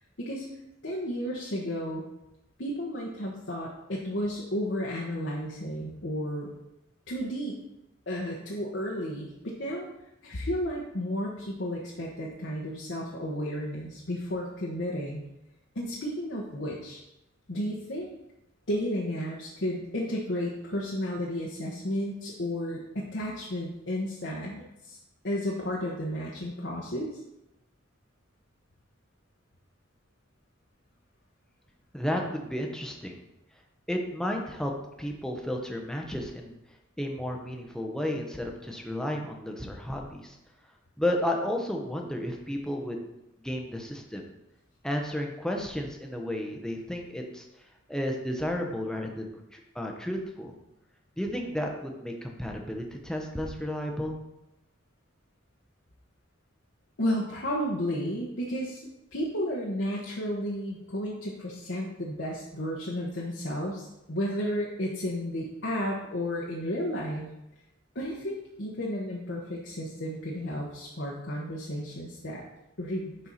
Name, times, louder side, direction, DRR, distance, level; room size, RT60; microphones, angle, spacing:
voice 1, 0.8-2.0 2.6-6.5 7.1-7.6 8.1-9.9 10.2-15.2 15.7-17.0 17.5-18.1 18.7-25.0 25.2-27.2 57.0-58.8 59.1-67.3 67.9-72.4 72.8-73.1, equal, 60° left, -4 dB, 1.1 m, -32 dB
voice 2, 31.9-33.1 33.9-34.7 35.0-36.5 37.0-40.4 41.0-43.0 43.4-44.2 44.8-47.4 47.9-50.6 51.2-54.2, left 1 dB, 5° left, 1 dB, 0.9 m, -32 dB
10.5 x 4.5 x 4.1 m, 0.91 s
head